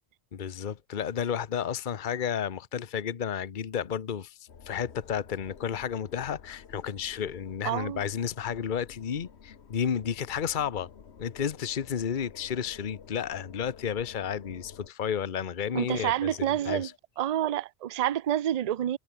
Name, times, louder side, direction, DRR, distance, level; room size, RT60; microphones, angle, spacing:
voice 1, 0.3-4.4 4.7-10.9 11.2-16.9, left 8 dB, 50° left, 1.0 m, -32 dB
sound 1, 4.5-14.9, left 6 dB, 75° left, 1.5 m, -51 dB
voice 2, 7.6-8.0 15.7-16.9 17.2-19.0, right 11 dB, 50° right, 0.5 m, -28 dB
omnidirectional pair, 1.1 m